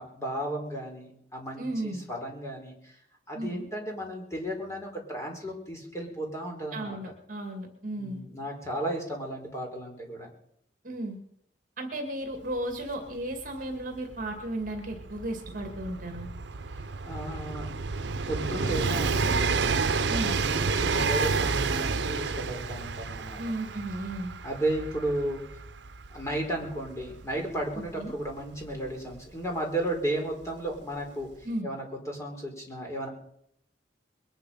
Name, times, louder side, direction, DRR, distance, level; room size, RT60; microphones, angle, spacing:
voice 1, 0.0-3.0 3.3-7.0 8.0-10.3 16.7-17.7 18.2-19.6 19.9-23.4 24.4-25.4 26.1-33.1, right 1 dB, 15° left, 1 dB, 4.3 m, -34 dB
voice 2, 1.6-2.0 3.3-3.6 6.7-8.2 10.8-11.2 11.8-16.3 20.1-20.4 23.4-24.3 28.0-28.1 31.4-31.7, right 1 dB, 50° right, 3 dB, 2.3 m, -34 dB
Train, 12.5-12.6 12.8-29.4 30.4-30.5, right 4 dB, 80° right, 0.8 m, -30 dB
21.5 x 10.5 x 5.7 m, 0.72 s
head